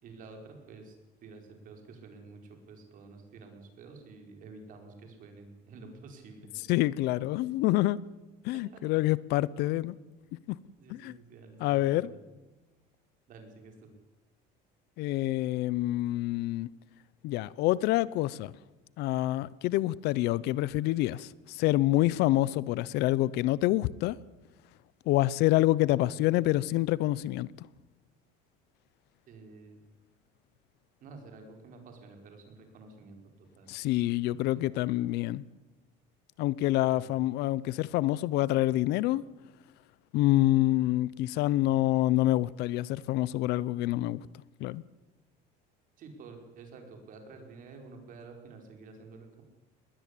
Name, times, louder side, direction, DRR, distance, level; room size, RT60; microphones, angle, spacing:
voice 1, 0.0-0.9 1.2-6.7 8.5-8.8 10.8-12.2 13.3-13.9 29.3-29.8 31.0-33.7 34.3-34.7 35.1-35.2 36.9-37.1 46.0-49.4, right 3 dB, 45° right, 4.9 m, -50 dB
voice 2, 6.7-8.0 8.4-9.9 10.5-10.6 10.9-11.2 11.6-12.1 15.0-16.7 17.2-18.5 19.0-24.2 25.1-27.5 33.7-35.4 36.4-39.2 40.1-44.2 44.6-44.8, left 16 dB, 65° left, 0.7 m, -27 dB
20.5 x 18.0 x 8.5 m
cardioid pair, 160°, 18 cm